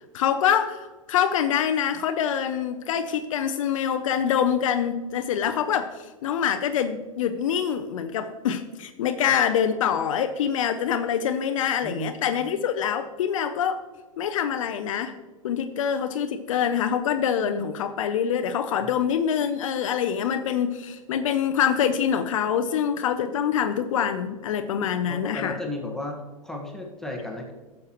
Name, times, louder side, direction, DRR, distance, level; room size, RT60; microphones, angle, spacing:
voice 1, 0.1-13.8 14.2-15.1 15.4-25.6, left 8 dB, 65° left, 8 dB, 0.6 m, -25 dB
voice 2, 25.1-26.2 26.4-27.5, left 1 dB, ahead, -1 dB, 1.5 m, -33 dB
12.0 x 7.4 x 3.0 m, 1.3 s
hypercardioid pair, 100°, 18 cm